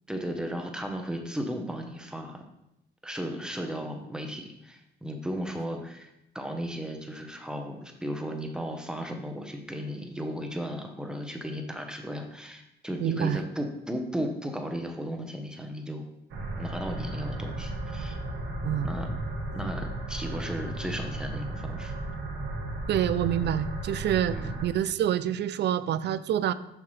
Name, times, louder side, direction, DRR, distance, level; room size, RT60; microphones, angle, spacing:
voice 1, 0.1-2.4 3.0-6.1 6.3-16.1 16.6-18.2 18.8-19.1 19.5-21.9 24.3-24.5, equal, 5° right, 3 dB, 1.1 m, -35 dB
voice 2, 13.0-13.4 18.6-18.9 22.9-24.4 24.6-26.5, right 10 dB, 60° right, 15 dB, 0.4 m, -27 dB
sound 1, 16.3-24.7, right 2 dB, 75° right, 1.5 m, -34 dB
7.2 x 5.8 x 3.3 m, 0.85 s
cardioid pair, 90°, 20 cm